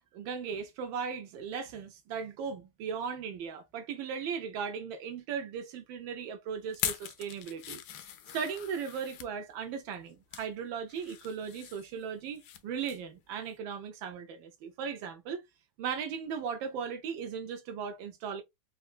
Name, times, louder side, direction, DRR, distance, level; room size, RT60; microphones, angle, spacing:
voice 1, 0.1-7.8 8.3-15.4 15.8-18.4, right 6 dB, 80° right, 1.4 m, -37 dB
sound 1, 6.7-9.3 9.9-10.5 10.9-12.6 12.9-13.1 13.5-13.6, left 10 dB, 75° left, 1.0 m, -41 dB
4.1 x 2.1 x 2.3 m
omnidirectional pair, 2.1 m